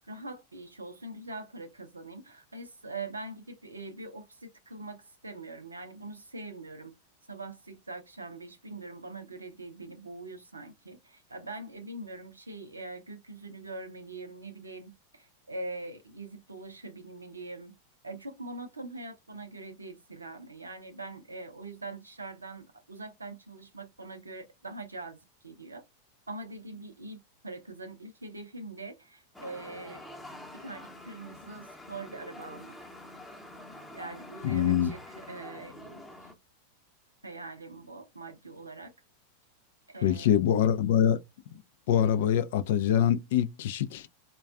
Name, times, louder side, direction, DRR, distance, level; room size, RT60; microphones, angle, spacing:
voice 1, 0.0-7.0 7.3-17.7 18.0-25.8 26.3-30.0 30.5-32.8 34.0-36.0 37.2-38.9 39.9-40.4, right 2 dB, 80° right, 0.6 m, -43 dB
sound 1, 29.3-36.3, left 1 dB, 5° left, 0.8 m, -47 dB
voice 2, 34.4-34.9 40.0-41.2 41.9-44.1, left 9 dB, 55° left, 0.3 m, -24 dB
2.4 x 2.2 x 2.3 m
figure-of-eight pair, 90°, 0 cm